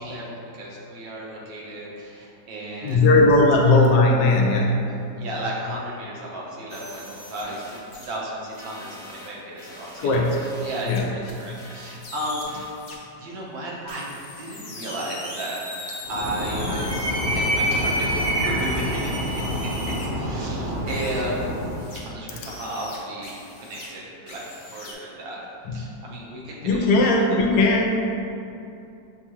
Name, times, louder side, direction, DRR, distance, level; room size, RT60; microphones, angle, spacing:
voice 1, 0.0-3.1 5.2-10.2 10.5-12.8 13.2-14.1 14.4-15.6 15.9-21.4 22.0-25.4 25.7-26.9, right 1 dB, 85° right, -5 dB, 1.6 m, -34 dB
voice 2, 2.8-4.8 10.0-10.4 10.9-11.1 25.7-25.8 26.6-27.9, left 2 dB, 75° left, 0 dB, 1.2 m, -18 dB
sound 1, 6.7-8.1 8.5-12.9 13.9-20.1 20.9-22.0 22.4-23.9 24.3-24.9, left 1 dB, 60° left, 0.7 m, -39 dB
Animal, 16.0-21.9, equal, 60° right, 0.8 m, -26 dB
6.4 x 2.3 x 2.9 m, 2.7 s
omnidirectional pair, 2.0 m